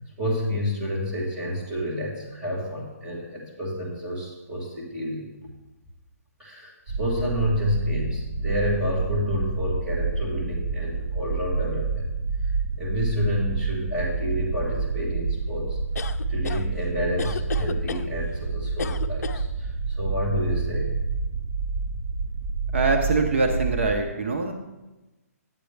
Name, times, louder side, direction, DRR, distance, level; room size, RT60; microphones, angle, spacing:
voice 1, 0.2-5.3 6.4-12.0 12.4-12.5 12.8-21.0, equal, 5° right, -8 dB, 1.4 m, -29 dB
sound 1, 6.9-23.9, right 4 dB, 25° right, 0.4 m, -29 dB
sound 2, 16.0-16.6 17.2-18.1 18.8-19.4, left 5 dB, 75° left, 0.4 m, -32 dB
voice 2, 22.7-24.5, right 3 dB, 50° right, 3 dB, 0.8 m, -23 dB
9.0 x 8.0 x 3.3 m, 1.1 s
hypercardioid pair, 180°, 9 cm